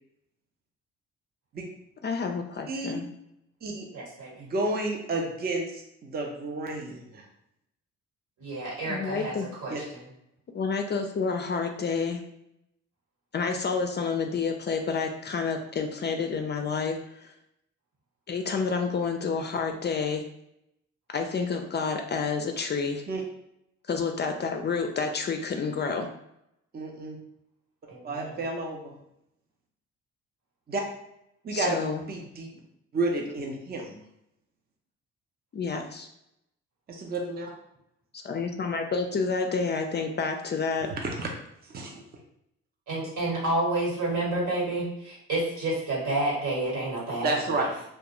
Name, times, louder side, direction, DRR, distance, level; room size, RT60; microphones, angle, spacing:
voice 1, 2.0-3.0 8.9-9.5 10.5-12.2 13.3-17.3 18.3-20.2 21.1-23.0 23.9-26.1 31.5-32.0 35.5-36.1 38.2-40.9, left 5 dB, 35° left, 4 dB, 0.4 m, -29 dB
voice 2, 2.7-3.0 3.6-3.9 4.4-7.2 9.7-9.8 23.1-23.2 26.7-27.2 28.0-28.9 30.7-30.8 31.4-31.8 32.1-32.5 32.9-34.0 36.9-37.5 40.9-41.3 41.6-42.0 47.2-47.7, right 2 dB, 30° right, 1 dB, 0.6 m, -31 dB
voice 3, 3.9-4.4 8.4-9.3 9.6-10.0 27.9-28.4 42.9-47.7, right 2 dB, 70° right, -4 dB, 1.4 m, -30 dB
2.3 x 2.2 x 2.9 m, 0.79 s
supercardioid pair, 65°, 31 cm